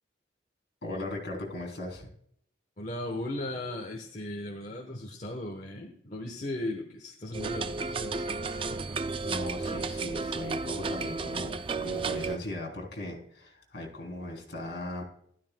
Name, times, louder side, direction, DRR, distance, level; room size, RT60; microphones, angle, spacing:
voice 1, 0.8-2.1 8.4-8.9 9.2-15.0, left 1 dB, 65° left, 1 dB, 3.4 m, -38 dB
voice 2, 2.8-8.3, left 1 dB, 40° left, 1 dB, 1.1 m, -37 dB
sound 1, 7.3-12.4, right 4 dB, 30° right, 0.3 m, -33 dB
12.5 x 12.0 x 2.3 m, 0.66 s
head